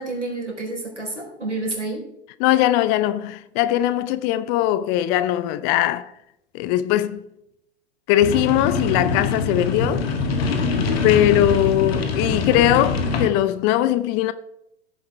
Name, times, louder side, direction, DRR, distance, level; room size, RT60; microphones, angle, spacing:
voice 1, 0.0-2.1, right 2 dB, 85° right, 4.0 m, -29 dB
voice 2, 2.4-6.1 6.5-7.2 8.1-10.1 11.0-14.3, left 13 dB, 30° left, 0.6 m, -20 dB
sound 1, 8.2-13.3, left 4 dB, 60° left, 2.0 m, -23 dB
15.5 x 9.4 x 3.4 m
figure-of-eight pair, 95°, 35 cm